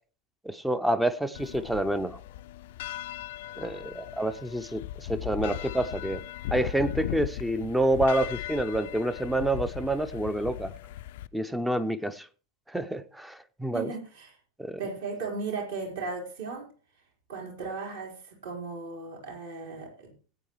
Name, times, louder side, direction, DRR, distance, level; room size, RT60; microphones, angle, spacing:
voice 1, 0.4-2.2 3.6-6.2 6.5-10.7 11.3-12.3 12.7-13.9 14.6-14.8, right 1 dB, 5° right, 0.6 m, -28 dB
sound 1, 1.3-11.3, left 13 dB, 55° left, 0.4 m, -38 dB
voice 2, 13.7-14.4 14.8-16.7 17.3-20.1, right 4 dB, 60° right, 4.3 m, -36 dB
19.0 x 8.6 x 3.1 m
figure-of-eight pair, 90°, 0 cm